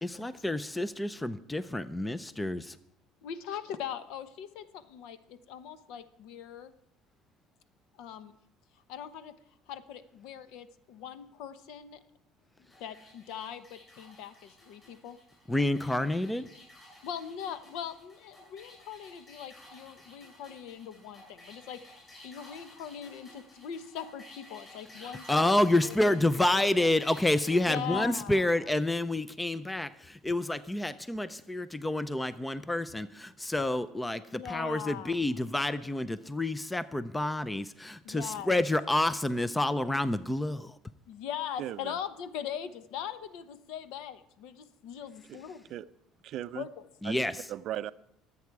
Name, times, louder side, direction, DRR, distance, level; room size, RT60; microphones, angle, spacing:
voice 1, 0.0-2.8 15.5-16.5 25.0-40.7 47.0-47.4, left 1 dB, 5° left, 14 dB, 0.4 m, -29 dB
voice 2, 3.2-6.7 8.0-8.3 8.9-9.3 9.7-12.0 12.8-15.2 17.0-21.8 22.1-25.5 25.8-26.0 26.5-26.7 27.7-28.6 34.3-35.2 38.0-38.5 41.1-45.6 46.5-46.7, left 9 dB, 70° left, 12 dB, 1.0 m, -41 dB
sound 1, 12.7-27.6, left 1 dB, 25° left, 7.6 m, -53 dB
voice 3, 41.6-42.0 45.3-45.4 45.7-45.9 46.2-46.7 47.0-47.9, right 12 dB, 50° right, 14 dB, 0.5 m, -38 dB
24.0 x 8.4 x 4.7 m, 0.75 s
cardioid pair, 160°, 0 cm